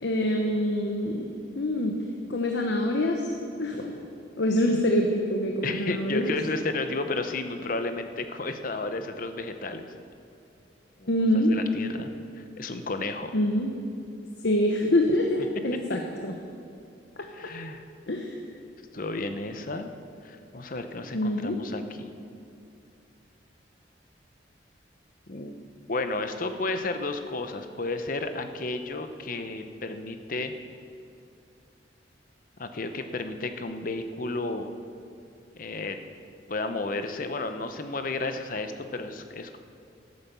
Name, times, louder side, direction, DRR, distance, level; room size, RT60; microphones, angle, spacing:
voice 1, 0.0-1.3 1.6-2.0 2.3-3.2 3.6-3.9 4.4-6.3 11.1-11.6 13.3-13.7 14.4-16.3 18.1-18.3 21.1-21.6, left 1 dB, 75° left, 2 dB, 1.0 m, -25 dB
voice 2, 5.6-9.9 11.0-11.1 11.3-12.1 12.4-13.3 17.3-17.8 18.9-19.9 20.2-22.1 25.3-25.5 25.9-30.5 32.6-34.7 35.6-36.0 36.5-39.6, left 2 dB, 50° left, 8 dB, 0.8 m, -32 dB
13.0 x 9.5 x 6.9 m, 2.5 s
head